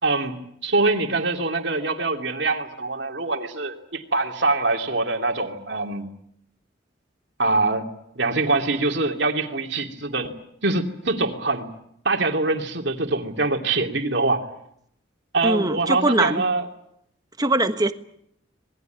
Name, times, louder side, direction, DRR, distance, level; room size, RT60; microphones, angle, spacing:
voice 1, 0.0-6.0 7.4-7.9 8.2-10.3 10.6-11.7 12.0-14.4 15.3-16.7, right 3 dB, 60° right, 4 dB, 2.9 m, -24 dB
voice 2, 15.4-16.4 17.4-17.9, right 2 dB, 20° right, 9 dB, 1.3 m, -21 dB
26.5 x 20.5 x 9.3 m, 0.74 s
head